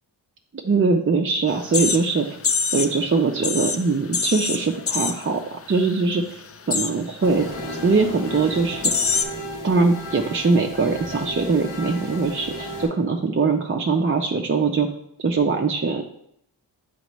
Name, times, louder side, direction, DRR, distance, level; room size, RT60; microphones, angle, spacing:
voice 1, 0.6-2.3 2.7-6.4 6.7-8.9 9.6-14.9 15.2-16.0, right 4 dB, 30° right, 2 dB, 0.5 m, -22 dB
sound 1, 1.5-3.0 3.3-5.4 5.7-6.0 6.3-7.0 7.7-7.8 8.4-8.5 8.8-9.2, left 5 dB, 35° left, 0.5 m, -25 dB
sound 2, 7.2-12.9, left 1 dB, 75° left, 2.3 m, -34 dB
8.0 x 4.3 x 3.1 m, 0.74 s
cardioid pair, 60°, 44 cm